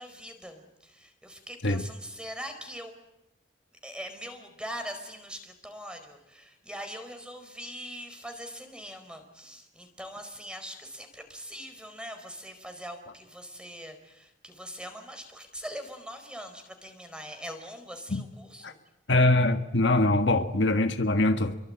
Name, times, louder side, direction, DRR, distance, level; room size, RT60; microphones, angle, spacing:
voice 1, 0.0-2.9 3.8-18.8, equal, 5° right, 4.5 m, -42 dB
voice 2, 19.1-21.6, left 2 dB, 65° left, 1.6 m, -23 dB
29.0 x 23.5 x 8.8 m
head